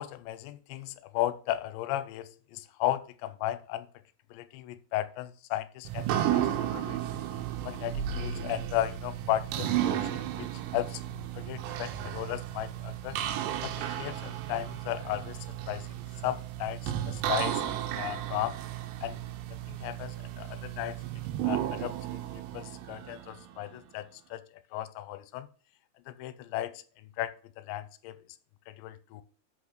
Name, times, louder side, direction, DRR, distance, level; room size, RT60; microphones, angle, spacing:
voice 1, 0.0-3.9 4.3-7.1 7.7-11.0 11.4-13.2 13.6-15.4 15.7-16.0 16.2-17.6 17.9-18.6 19.0-19.2 19.7-21.0 21.4-22.0 22.5-24.4 24.7-25.5 26.1-26.7 27.2-28.2 28.7-29.2, left 14 dB, 90° left, 2.8 m, -35 dB
sound 1, 5.9-23.7, right 11 dB, 90° right, 3.1 m, -34 dB
6.1 x 5.9 x 6.5 m
omnidirectional pair, 5.1 m